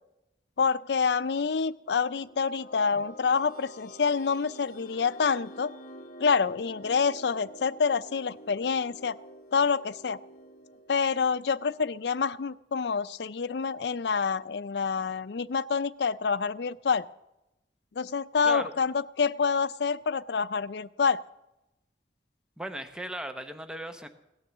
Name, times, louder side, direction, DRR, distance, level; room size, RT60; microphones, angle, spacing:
voice 1, 0.6-5.7 6.2-9.2 9.5-10.2 10.9-17.1 18.0-21.2, left 5 dB, 70° left, 16 dB, 0.5 m, -27 dB
sound 1, 1.8-12.6, right 1 dB, 50° left, 0.9 m, -49 dB
voice 2, 22.6-24.1, right 1 dB, 5° right, 7 dB, 0.8 m, -37 dB
17.0 x 9.8 x 7.2 m, 0.92 s
head